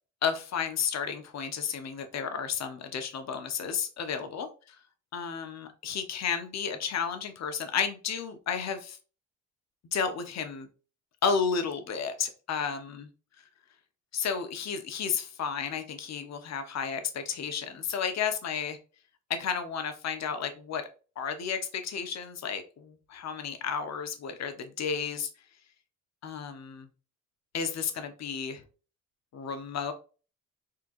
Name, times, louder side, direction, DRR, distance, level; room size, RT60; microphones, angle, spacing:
voice 1, 0.2-4.5 5.1-9.0 9.9-10.7 11.2-13.0 14.1-18.8 19.3-20.8 21.2-25.3 26.2-26.9 27.5-28.6 29.3-29.9, left 6 dB, 60° left, 8 dB, 1.0 m, -32 dB
4.4 x 3.8 x 2.5 m, 0.35 s
cardioid pair, 90°, 30 cm